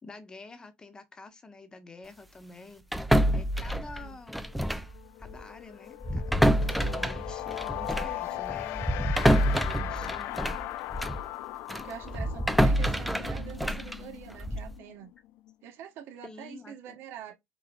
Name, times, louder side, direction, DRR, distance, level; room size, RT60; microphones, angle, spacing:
voice 1, 0.0-2.9 3.3-4.4 5.2-10.4 16.2-17.0, left 3 dB, 20° left, 0.8 m, -48 dB
sound 1, 2.9-5.0 5.2-5.4 6.0-11.3 11.7-14.8, equal, ahead, 0.3 m, -27 dB
sound 2, 4.5-4.7 4.9-15.5, left 15 dB, 80° left, 0.4 m, -39 dB
voice 2, 8.1-8.4 11.8-15.1 15.6-17.3, right 9 dB, 70° right, 1.2 m, -45 dB
4.8 x 3.8 x 2.3 m
cardioid pair, 155°, 4 cm